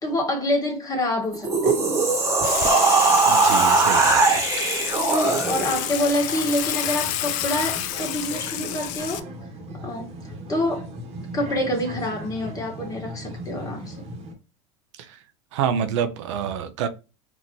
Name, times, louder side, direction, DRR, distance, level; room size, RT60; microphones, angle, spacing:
voice 1, 0.0-1.8 5.5-9.3 9.8-10.1 10.5-10.9 11.3-14.0, left 1 dB, 25° left, 1.8 m, -26 dB
sound 1, 1.3-5.9, right 3 dB, 20° right, 1.5 m, -20 dB
Water / Water tap faucet / Sink (filling or washing), 2.4-9.2, left 12 dB, 60° left, 0.5 m, -29 dB
voice 2, 3.3-4.5 15.0-15.2 15.5-16.9, right 8 dB, 75° right, 0.6 m, -27 dB
sound 2, 5.3-14.3, right 1 dB, 45° right, 1.3 m, -38 dB
4.3 x 2.8 x 3.1 m
hypercardioid pair, 90°, 15 cm